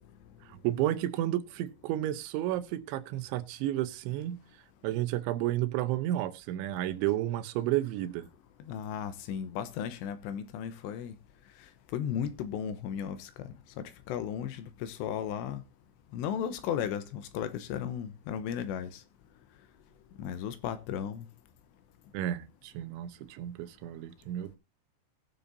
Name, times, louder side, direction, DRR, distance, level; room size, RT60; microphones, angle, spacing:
voice 1, 0.4-4.4 4.8-8.3 22.1-24.6, right 13 dB, 85° right, 3.3 m, -32 dB
voice 2, 8.7-11.1 11.9-13.5 13.8-15.6 16.1-19.0 20.2-21.3, left 9 dB, 80° left, 3.0 m, -35 dB
20.0 x 7.0 x 2.7 m
omnidirectional pair, 5.2 m